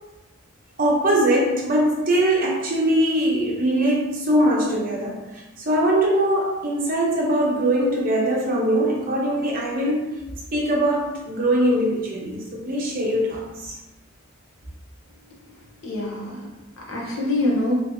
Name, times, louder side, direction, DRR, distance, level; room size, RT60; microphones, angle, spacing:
voice 1, 0.8-10.2 10.5-13.8, right 1 dB, 40° right, -3 dB, 0.7 m, -22 dB
voice 2, 15.8-17.7, left 2 dB, 65° left, -3 dB, 0.9 m, -26 dB
3.1 x 3.0 x 2.7 m, 1.0 s
head